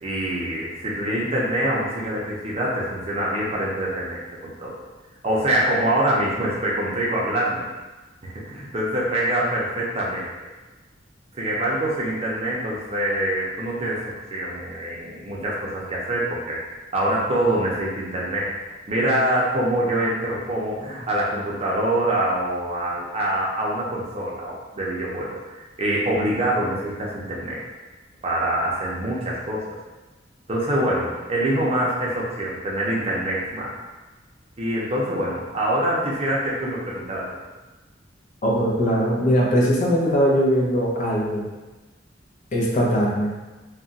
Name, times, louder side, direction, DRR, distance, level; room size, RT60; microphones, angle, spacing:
voice 1, 0.0-4.7 5.2-7.7 8.2-10.3 11.3-16.6 16.9-18.5 18.9-25.4 25.8-27.6 28.2-29.6 30.5-33.7 34.6-37.3, right 1 dB, 35° right, -5 dB, 0.6 m, -25 dB
voice 2, 38.4-41.5 42.5-43.3, equal, 40° left, -5 dB, 0.6 m, -20 dB
2.4 x 2.2 x 3.9 m, 1.2 s
head